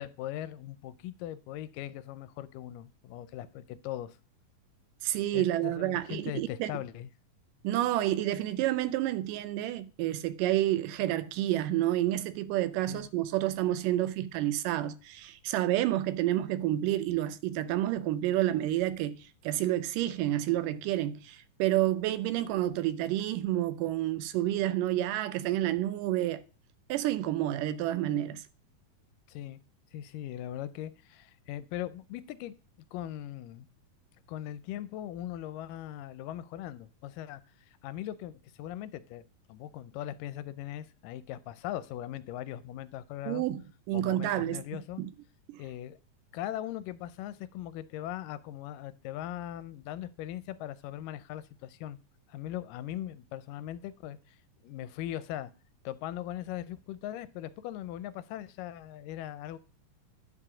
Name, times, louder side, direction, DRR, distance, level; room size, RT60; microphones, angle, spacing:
voice 1, 0.0-4.2 5.3-7.1 12.9-13.1 29.3-29.6 29.9-32.6 32.9-33.7 34.3-37.4 37.7-39.2 39.5-43.4 43.9-45.0 45.6-46.0 46.3-52.0 52.3-54.4 54.6-55.5 55.9-59.6, left 12 dB, 80° left, 2.1 m, -40 dB
voice 2, 5.0-6.7 7.6-26.4 26.9-28.4 43.3-43.6 43.9-44.6 45.0-45.1 45.5-45.6, right 14 dB, 80° right, 2.2 m, -29 dB
9.9 x 4.8 x 4.9 m
omnidirectional pair, 3.9 m